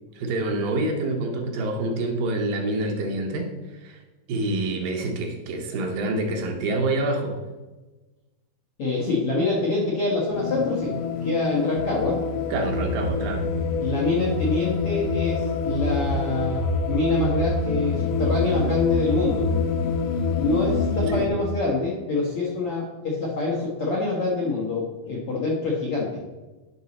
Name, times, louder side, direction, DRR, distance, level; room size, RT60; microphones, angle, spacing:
voice 1, 0.2-3.5 3.8-4.0 4.3-7.3 12.5-13.5 21.0-21.2, right 2 dB, 70° right, 1 dB, 2.5 m, -27 dB
voice 2, 8.8-10.9 11.2-12.2 13.8-19.5 20.4-26.1, left 3 dB, 60° left, -5 dB, 1.5 m, -25 dB
sound 1, 10.3-21.3, left 3 dB, 90° left, 2.7 m, -26 dB
10.0 x 5.4 x 4.1 m, 1.2 s
omnidirectional pair, 4.3 m